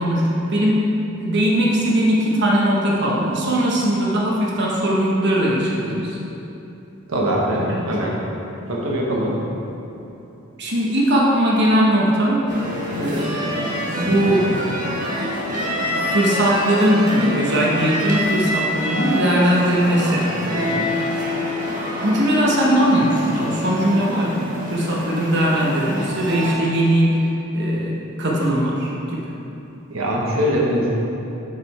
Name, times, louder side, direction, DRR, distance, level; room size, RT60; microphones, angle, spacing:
voice 1, 0.0-6.2 7.7-8.1 10.6-12.4 12.9-13.5 14.0-14.6 15.8-20.9 22.0-29.3, equal, 55° right, -4 dB, 1.1 m, -20 dB
voice 2, 7.1-8.2 8.7-9.4 29.9-30.9, equal, 90° right, -3 dB, 1.1 m, -22 dB
sound 1, 12.5-26.5, left 1 dB, 40° right, 1.4 m, -26 dB
8.0 x 5.1 x 4.3 m, 3.0 s
head